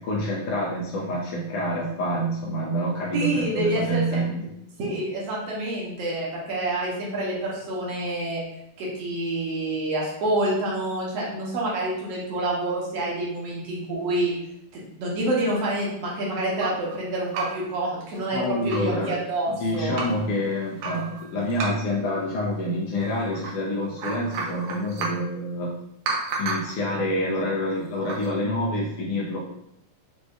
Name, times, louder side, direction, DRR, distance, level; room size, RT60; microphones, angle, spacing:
voice 1, 0.0-4.5 18.3-19.2 19.5-25.7 26.4-29.4, equal, 85° left, -4 dB, 1.3 m, -27 dB
voice 2, 3.1-4.0 4.8-8.4 8.8-14.3 14.7-20.0, right 1 dB, 65° right, -4 dB, 1.8 m, -27 dB
sound 1, 15.5-16.9 17.3-17.8 18.2-18.3 18.5-19.0 19.5-20.2 20.8-22.0 23.0-23.5 23.8-25.3 26.1-26.8 27.9-28.3, right 3 dB, 85° right, 2.2 m, -33 dB
6.1 x 2.4 x 2.4 m, 0.76 s
omnidirectional pair, 3.4 m